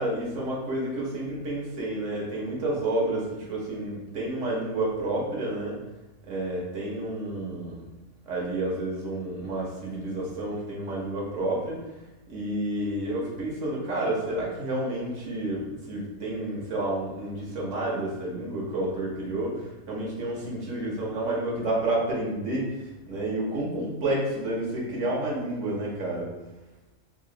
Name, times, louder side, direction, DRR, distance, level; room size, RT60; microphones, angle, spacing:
voice 1, 0.0-5.8 6.2-7.9 8.2-11.8 12.3-26.3, right 1 dB, 65° right, -4 dB, 1.4 m, -30 dB
3.7 x 2.5 x 3.8 m, 1.1 s
omnidirectional pair, 1.4 m